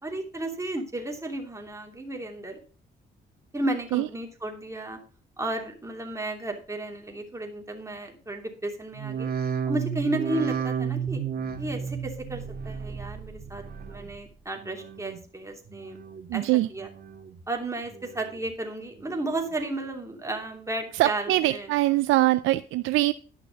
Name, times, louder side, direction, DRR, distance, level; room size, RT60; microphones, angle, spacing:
voice 1, 0.0-2.6 3.5-5.0 5.4-9.3 9.7-11.2 11.6-16.0 16.3-16.4 16.7-16.9 17.5-21.7, right 2 dB, 15° right, 2 dB, 2.9 m, -33 dB
sound 1, 8.9-14.3 14.6-15.2 15.7-16.3 16.8-17.4 17.8-18.5 19.0-19.5 20.1-20.2, right 7 dB, 50° right, 1.8 m, -33 dB
voice 2, 16.3-16.7 20.9-23.1, right 17 dB, 85° right, 13 dB, 0.4 m, -23 dB
11.5 x 5.9 x 5.9 m, 0.40 s
cardioid pair, 90°, 20 cm